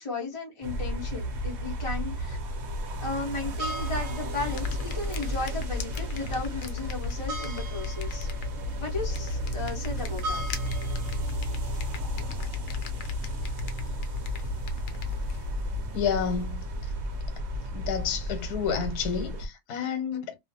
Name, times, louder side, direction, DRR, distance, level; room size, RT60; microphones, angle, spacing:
voice 1, 0.0-2.4 3.0-8.3 8.8-10.4, left 3 dB, 40° left, 0.4 m, -35 dB
sound 1, 0.6-19.5, equal, 60° right, 0.7 m, -32 dB
sound 2, 4.4-15.5, left 7 dB, 65° left, 0.8 m, -46 dB
voice 2, 15.9-16.6 17.7-20.4, left 7 dB, 80° left, 1.2 m, -30 dB
2.5 x 2.1 x 2.6 m
omnidirectional pair, 1.6 m